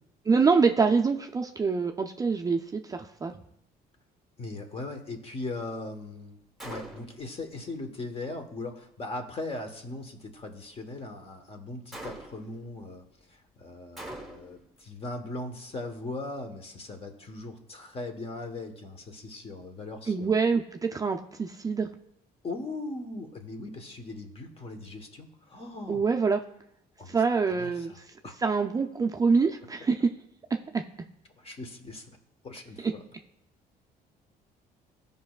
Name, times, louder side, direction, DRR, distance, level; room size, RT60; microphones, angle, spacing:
voice 1, 0.3-3.3 20.1-21.9 25.9-26.4 27.1-28.0 28.4-30.0 30.7-30.8, right 5 dB, 20° right, 3 dB, 0.4 m, -25 dB
voice 2, 4.4-20.3 22.4-26.1 27.0-28.3 31.4-32.1 32.4-33.0, left 2 dB, 35° left, 5 dB, 1.2 m, -39 dB
Gunshot gunfire, 6.6-7.3 11.9-12.6 14.0-14.7, right 1 dB, ahead, 1.3 m, -42 dB
15.5 x 5.2 x 2.4 m, 0.78 s
cardioid pair, 110°, 17 cm